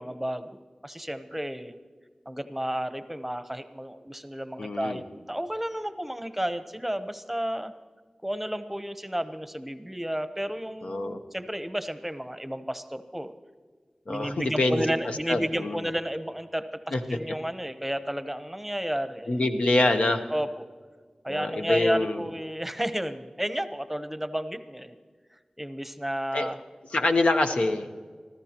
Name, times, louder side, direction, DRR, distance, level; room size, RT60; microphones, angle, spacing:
voice 1, 0.0-1.7 2.3-7.7 8.2-13.3 14.1-19.4 20.3-20.5 21.2-25.0 25.6-26.6, equal, 10° right, 10 dB, 0.8 m, -32 dB
voice 2, 4.6-5.0 10.8-11.2 14.1-14.8 15.3-15.8 16.9-17.2 19.3-20.2 21.3-22.3 26.3-26.5 26.9-27.9, left 2 dB, 80° left, 5 dB, 0.9 m, -25 dB
25.0 x 14.5 x 2.9 m, 1.5 s
wide cardioid pair, 45°, 2 cm